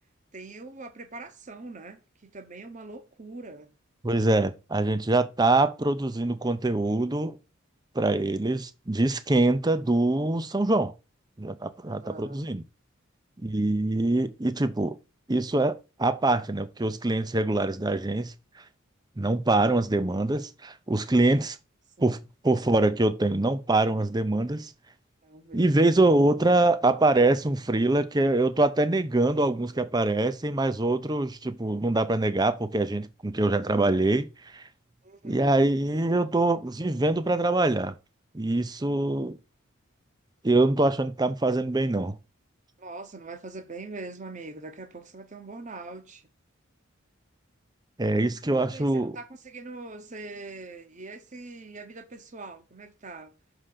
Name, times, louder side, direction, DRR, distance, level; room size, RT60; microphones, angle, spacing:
voice 1, 0.3-3.7 11.8-12.5 25.2-25.9 35.0-35.6 42.8-46.2 48.5-53.3, right 3 dB, 35° right, 1.0 m, -42 dB
voice 2, 4.0-7.4 7.9-10.9 11.4-12.6 13.4-15.0 15.3-18.3 19.2-21.6 22.0-22.2 22.4-24.7 25.5-34.6 35.2-37.9 38.3-39.4 40.4-42.1 48.0-49.1, right 2 dB, 20° right, 0.6 m, -24 dB
6.5 x 5.0 x 5.7 m
head